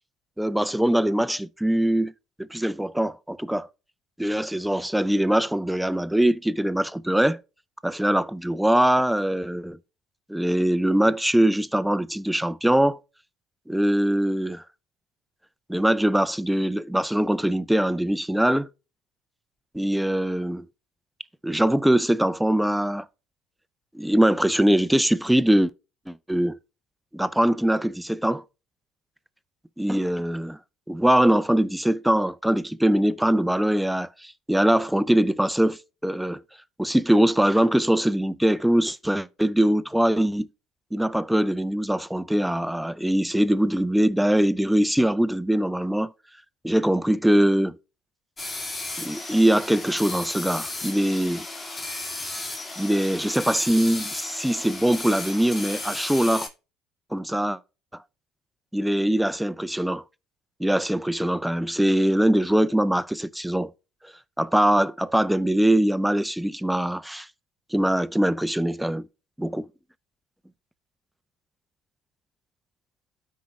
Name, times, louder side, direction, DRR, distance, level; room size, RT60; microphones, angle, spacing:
voice 1, 0.4-2.1 2.4-3.7 4.2-7.4 7.8-9.8 10.3-13.0 13.7-14.6 15.7-18.7 19.7-20.6 21.4-23.1 23.9-25.7 26.1-26.6 27.1-28.4 29.8-30.6 30.9-36.4 36.8-40.5 40.9-46.1 46.6-47.8 49.0-51.5 52.8-56.5 57.1-57.6 58.7-60.0 60.6-63.7 64.4-67.3 67.7-69.0 69.4-69.7, right 1 dB, 5° right, 0.4 m, -22 dB
sound 1, 48.4-56.5, left 2 dB, 30° left, 2.4 m, -34 dB
12.5 x 4.7 x 3.2 m
hypercardioid pair, 65°, 0 cm